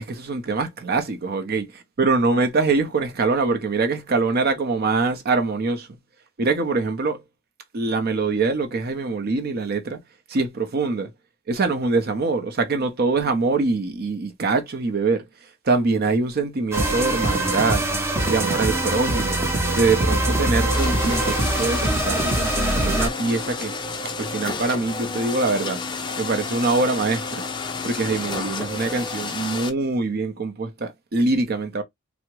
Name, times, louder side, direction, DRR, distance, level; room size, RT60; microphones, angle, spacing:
voice 1, 0.0-1.7 2.0-5.9 6.4-7.2 7.7-10.0 10.3-11.1 11.5-15.2 15.6-17.8 18.3-19.4 19.8-23.7 24.2-25.8 26.2-27.4 27.8-31.8, right 3 dB, 50° right, 0.6 m, -23 dB
sound 1, 16.7-23.1, right 1 dB, 15° right, 0.7 m, -23 dB
sound 2, 20.7-29.7, left 4 dB, 20° left, 0.4 m, -31 dB
3.3 x 2.0 x 3.0 m
head